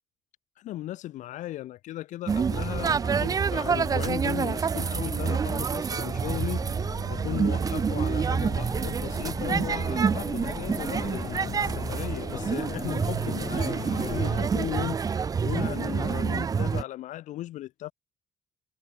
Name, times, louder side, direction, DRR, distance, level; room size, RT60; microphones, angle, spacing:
voice 1, 0.6-6.8 7.1-17.9, left 14 dB, 80° left, 0.9 m, -36 dB
sound 1, 2.3-16.8, right 6 dB, 30° right, 0.4 m, -27 dB
sound 2, 6.1-14.5, left 10 dB, 50° left, 0.4 m, -39 dB
cardioid pair, 95°, 13 cm